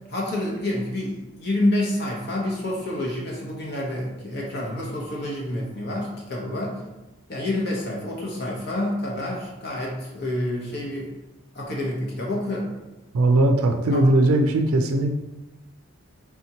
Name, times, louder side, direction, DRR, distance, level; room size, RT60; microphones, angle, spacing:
voice 1, 0.1-6.8 7.3-11.1 11.5-12.7 13.9-14.0, left 1 dB, 50° left, -2 dB, 0.8 m, -28 dB
voice 2, 13.1-15.1, right 1 dB, 85° right, 5 dB, 0.4 m, -19 dB
4.2 x 3.5 x 2.9 m, 1.0 s
head